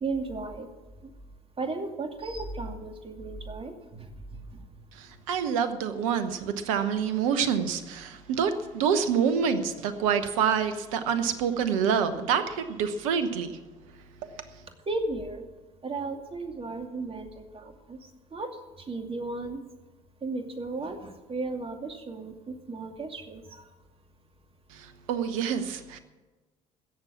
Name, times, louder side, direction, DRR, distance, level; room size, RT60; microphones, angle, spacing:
voice 1, 0.0-0.7 1.6-3.7 14.9-15.4 15.8-17.3 17.5-17.6 17.9-18.0 18.3-18.5 18.9-19.6 20.2-23.4, right 3 dB, 35° right, 5 dB, 2.5 m, -34 dB
voice 2, 5.0-13.5 25.1-26.0, right 7 dB, 75° right, 11 dB, 1.0 m, -27 dB
16.5 x 7.2 x 8.5 m, 1.2 s
hypercardioid pair, 55°, 17 cm